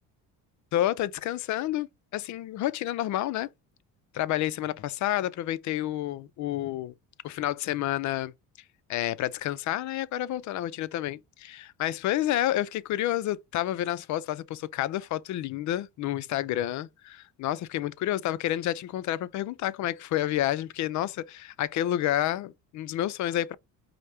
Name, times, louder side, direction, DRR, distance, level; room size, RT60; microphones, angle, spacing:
voice 1, 0.7-1.9 2.1-3.5 4.1-6.9 7.2-8.3 8.9-23.6, left 13 dB, 55° left, 0.4 m, -29 dB
5.0 x 2.1 x 4.3 m
cardioid pair, 125°, 36 cm